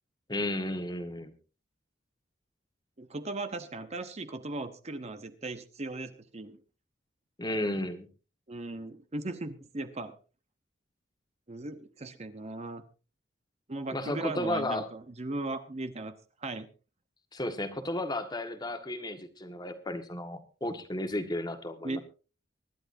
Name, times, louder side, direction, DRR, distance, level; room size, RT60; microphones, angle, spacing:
voice 1, 0.3-1.3 7.4-8.1 13.9-14.9 17.3-22.0, left 1 dB, 20° left, 7 dB, 1.6 m, -33 dB
voice 2, 3.0-6.6 8.5-10.2 11.5-12.8 13.7-16.1 16.4-16.7 21.8-22.0, right 2 dB, 35° right, 9 dB, 0.9 m, -37 dB
24.5 x 11.5 x 2.7 m, 0.34 s
head